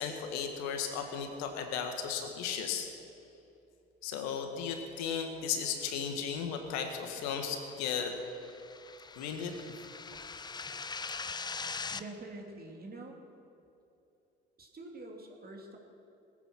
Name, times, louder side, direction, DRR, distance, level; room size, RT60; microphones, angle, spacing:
voice 1, 0.0-2.9 4.0-8.1 9.2-9.5, left 7 dB, 60° left, 5 dB, 1.9 m, -35 dB
sound 1, 7.6-12.0, left 4 dB, 15° left, 0.5 m, -42 dB
voice 2, 11.9-13.2 14.6-15.8, right 2 dB, 30° right, 1 dB, 2.7 m, -46 dB
20.5 x 9.1 x 6.1 m, 2.7 s
hypercardioid pair, 60°, 30 cm